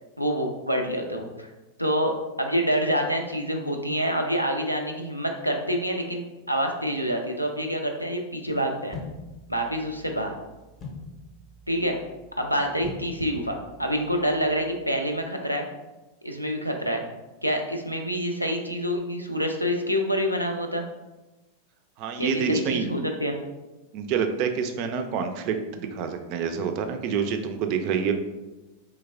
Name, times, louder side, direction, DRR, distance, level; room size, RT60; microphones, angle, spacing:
voice 1, 0.2-1.5 1.8-9.0 9.5-10.3 11.7-12.0 12.4-15.7 16.2-17.0 17.4-20.8 22.2-23.4, equal, 90° left, 3 dB, 0.4 m, -27 dB
sound 1, 8.9-15.0, left 3 dB, 30° left, 0.6 m, -44 dB
voice 2, 22.0-22.9 23.9-28.1, right 6 dB, 45° right, 7 dB, 0.3 m, -27 dB
3.3 x 3.0 x 2.4 m, 1.1 s
figure-of-eight pair, 90°, 0 cm